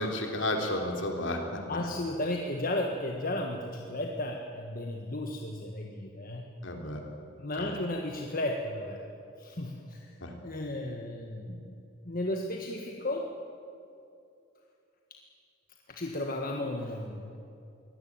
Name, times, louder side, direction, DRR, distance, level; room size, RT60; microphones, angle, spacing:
voice 1, 0.0-1.6 6.6-7.0 7.6-7.7 10.2-10.3, left 1 dB, 65° left, 3 dB, 3.6 m, -32 dB
voice 2, 1.7-6.5 7.4-9.0 9.4-10.1 10.4-11.7 12.0-13.3 15.9-17.4, left 1 dB, 45° left, 2 dB, 1.5 m, -34 dB
23.0 x 18.5 x 9.0 m, 2.6 s
head